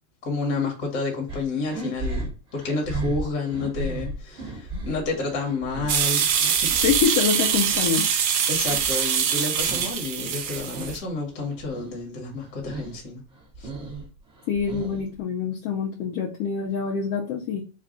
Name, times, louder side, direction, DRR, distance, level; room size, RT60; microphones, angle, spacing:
voice 1, 0.2-6.7 8.5-13.2 13.6-13.7, left 3 dB, 45° left, 1.1 m, -30 dB
sound 1, 1.3-7.9 8.2-10.0 10.3-11.0 11.4-12.0 12.3-13.0 13.3-15.2, right 2 dB, 50° right, 0.8 m, -35 dB
sound 2, 5.9-11.0, right 8 dB, 75° right, 1.7 m, -23 dB
voice 2, 6.7-8.0 14.5-17.6, left 7 dB, 75° left, 1.5 m, -25 dB
4.7 x 2.3 x 3.6 m
omnidirectional pair, 3.4 m